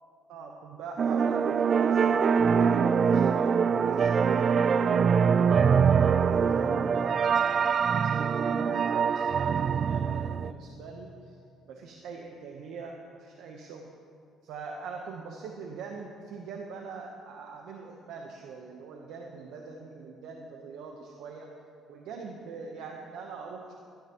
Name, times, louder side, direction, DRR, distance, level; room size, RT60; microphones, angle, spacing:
voice 1, 0.3-5.0 5.6-11.4 11.7-13.9 14.4-21.5 21.9-23.7, right 4 dB, 80° right, 1 dB, 1.0 m, -43 dB
sound 1, 1.0-10.5, right 6 dB, 45° right, 0.3 m, -24 dB
15.0 x 13.0 x 3.0 m, 2.4 s
cardioid pair, 95°, 0 cm